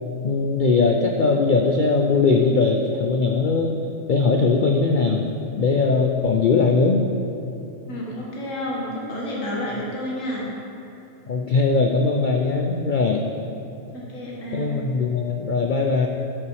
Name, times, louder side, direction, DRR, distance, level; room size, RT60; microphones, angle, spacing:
voice 1, 0.2-3.7 4.1-5.2 5.6-7.0 11.3-13.3 14.5-16.1, left 4 dB, 85° left, 2 dB, 0.4 m, -20 dB
voice 2, 7.9-10.5 13.9-14.8, equal, 55° left, -4 dB, 2.2 m, -30 dB
12.0 x 5.7 x 4.8 m, 2.9 s
omnidirectional pair, 1.6 m